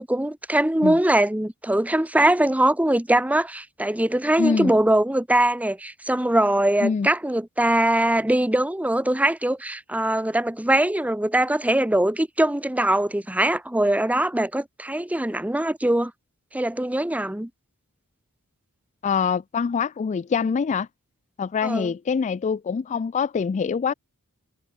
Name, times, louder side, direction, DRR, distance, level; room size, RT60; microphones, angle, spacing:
voice 1, 0.0-16.1 16.5-17.5 21.6-21.9, right 1 dB, 5° right, 0.7 m, -22 dB
voice 2, 4.4-4.7 6.8-7.1 19.0-20.9 21.4-23.9, left 6 dB, 30° left, 0.3 m, -24 dB
head